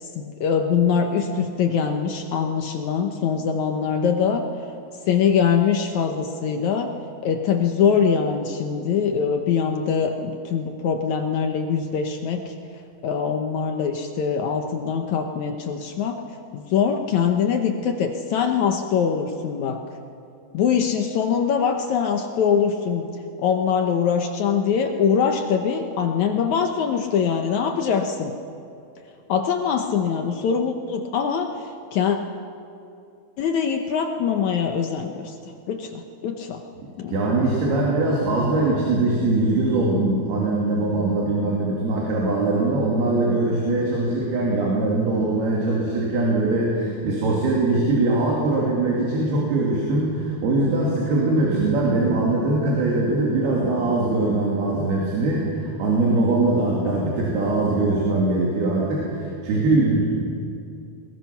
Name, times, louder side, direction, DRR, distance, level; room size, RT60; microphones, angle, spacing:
voice 1, 0.0-4.4 5.1-6.9 7.2-12.5 13.0-16.2 16.5-19.8 20.5-23.1 23.4-28.3 29.3-32.2 33.4-35.4 35.7-36.6 37.0-37.3, left 7 dB, 70° left, 4 dB, 1.8 m, -23 dB
voice 2, 36.8-60.1, right 2 dB, 90° right, -3 dB, 4.5 m, -22 dB
21.5 x 21.0 x 5.9 m, 2.5 s
omnidirectional pair, 4.4 m